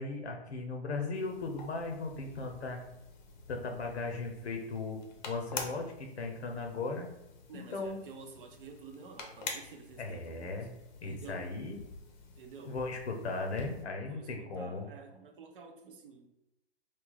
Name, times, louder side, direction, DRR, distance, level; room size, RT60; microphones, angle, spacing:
voice 1, 0.0-2.8 3.5-5.0 5.3-7.1 7.5-8.0 10.0-10.7 11.0-11.8 12.7-14.9, left 3 dB, 90° left, 3 dB, 0.8 m, -37 dB
sound 1, 1.1-13.8, left 4 dB, 45° left, 0.7 m, -48 dB
voice 2, 7.5-10.7 11.0-11.5 12.4-12.8 14.1-16.3, right 5 dB, 55° right, 4 dB, 0.7 m, -50 dB
3.2 x 2.3 x 3.8 m, 0.90 s
hypercardioid pair, 145°, 32 cm